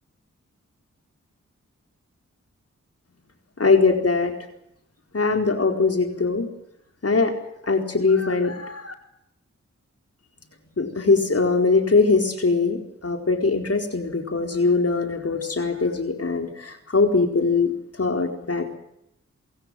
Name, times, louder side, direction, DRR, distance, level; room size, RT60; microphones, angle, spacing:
voice 1, 3.6-4.3 5.1-6.5 7.0-7.3 7.6-8.9 10.8-17.7 18.0-18.8, left 4 dB, 55° left, 4 dB, 4.5 m, -21 dB
28.5 x 16.5 x 7.8 m, 0.80 s
cardioid pair, 45°, 30 cm